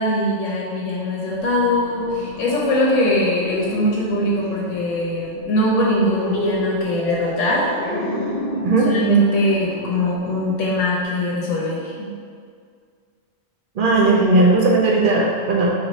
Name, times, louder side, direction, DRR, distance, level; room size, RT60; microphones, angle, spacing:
voice 1, 0.0-7.6 8.8-12.1, left 1 dB, 75° left, -5 dB, 1.0 m, -21 dB
sound 1, 1.3-11.0, left 1 dB, 55° left, 0.3 m, -31 dB
voice 2, 13.8-15.7, right 2 dB, 55° right, -2 dB, 0.6 m, -16 dB
4.9 x 2.6 x 3.0 m, 2.1 s
omnidirectional pair, 1.3 m